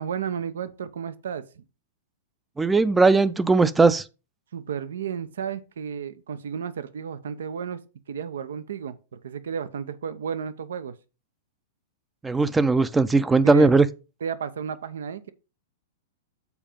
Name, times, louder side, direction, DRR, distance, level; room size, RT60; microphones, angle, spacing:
voice 1, 0.0-1.6 4.5-7.8 8.1-9.0 9.2-10.9 13.4-13.7 14.2-15.3, right 7 dB, 75° right, 0.7 m, -32 dB
voice 2, 2.6-4.0 12.2-13.9, right 3 dB, 10° right, 0.5 m, -18 dB
7.2 x 4.5 x 5.1 m
hypercardioid pair, 110°, 0 cm